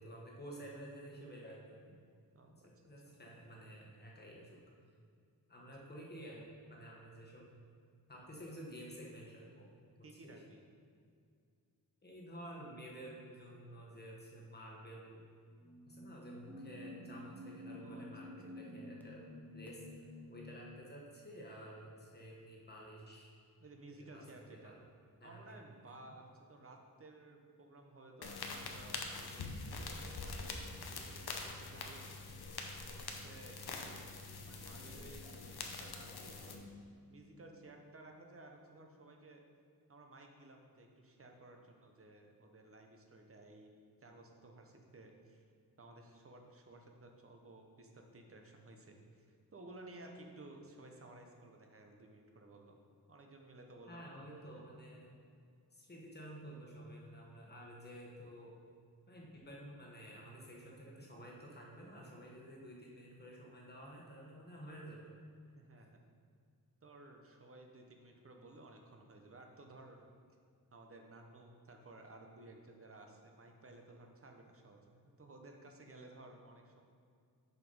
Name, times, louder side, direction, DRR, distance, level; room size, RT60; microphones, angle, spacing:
voice 1, 0.0-2.0 2.5-4.6 5.5-7.5 8.1-9.7 10.2-10.4 12.0-15.2 15.9-19.3 19.5-23.3 24.0-24.8 25.2-25.6 53.9-55.1 55.7-58.6 59.1-65.1, right 1 dB, 25° left, -3 dB, 1.3 m, -51 dB
voice 2, 2.3-2.7 3.1-3.2 10.0-10.6 17.8-18.1 23.6-24.8 25.2-32.2 32.8-34.1 34.4-36.7 37.1-39.4 39.9-43.7 44.0-45.4 45.8-52.8 53.1-54.6 65.5-66.0 66.8-70.1 70.7-76.8, right 2 dB, 35° right, 3 dB, 0.8 m, -56 dB
sound 1, 15.5-20.8, left 1 dB, 5° left, 0.6 m, -50 dB
sound 2, 28.2-36.5, left 3 dB, 80° left, 0.8 m, -45 dB
6.4 x 5.0 x 5.4 m, 2.3 s
wide cardioid pair, 165°, 38 cm